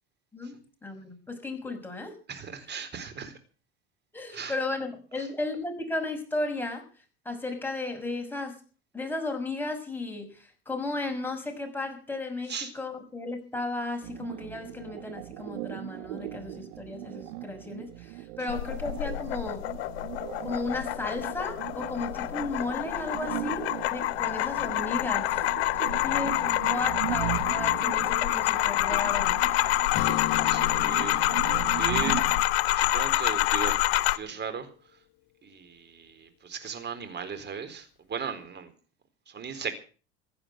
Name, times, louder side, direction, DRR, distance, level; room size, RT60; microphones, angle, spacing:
voice 1, 0.3-2.2 4.1-6.8 7.2-8.6 8.9-19.6 20.4-25.4 25.7-29.4, left 2 dB, 5° left, 6.2 m, -34 dB
voice 2, 2.3-3.4 4.3-4.6 12.5-12.7 18.4-18.5 30.4-31.2 31.6-32.2 32.7-35.0 35.4-38.7 39.3-39.7, right 6 dB, 35° right, 4.1 m, -37 dB
sound 1, 14.0-32.4, right 16 dB, 75° right, 1.2 m, -39 dB
sound 2, 18.5-34.2, left 16 dB, 80° left, 1.0 m, -27 dB
Acoustic guitar / Strum, 29.9-33.6, left 15 dB, 50° left, 0.8 m, -36 dB
16.0 x 10.0 x 7.9 m
supercardioid pair, 95°, 31 cm